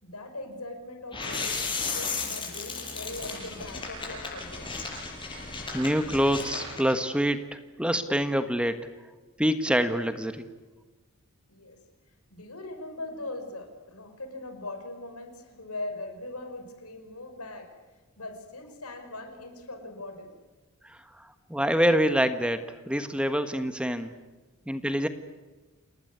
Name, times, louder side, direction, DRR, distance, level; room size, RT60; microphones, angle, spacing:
voice 1, 0.0-4.7 11.5-11.8 12.3-17.7 18.2-20.3, left 2 dB, 80° left, 7 dB, 5.5 m, -40 dB
sound 1, 1.1-6.9, left 4 dB, 20° left, 7.0 m, -34 dB
voice 2, 5.7-8.9 9.4-10.4 20.8-24.1 24.7-25.1, equal, 5° right, 9 dB, 1.4 m, -26 dB
29.0 x 19.5 x 9.5 m, 1.3 s
head